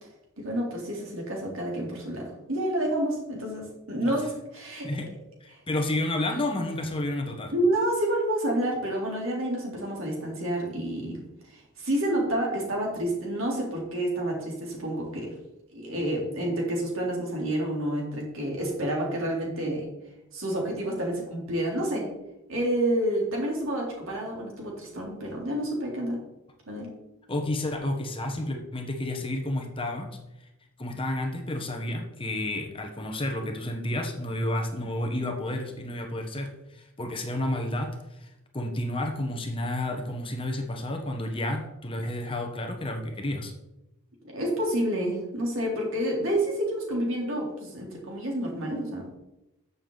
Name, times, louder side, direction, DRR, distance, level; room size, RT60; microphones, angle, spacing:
voice 1, 0.4-4.3 4.5-4.9 7.5-11.2 11.5-15.3 15.7-19.9 20.3-22.1 22.5-26.3 26.7-26.9 44.2-49.2, right 1 dB, 65° right, -1 dB, 3.4 m, -29 dB
voice 2, 5.4-7.5 27.3-30.2 30.8-43.5, left 1 dB, 25° left, 4 dB, 1.1 m, -31 dB
13.5 x 6.9 x 4.0 m, 0.94 s
head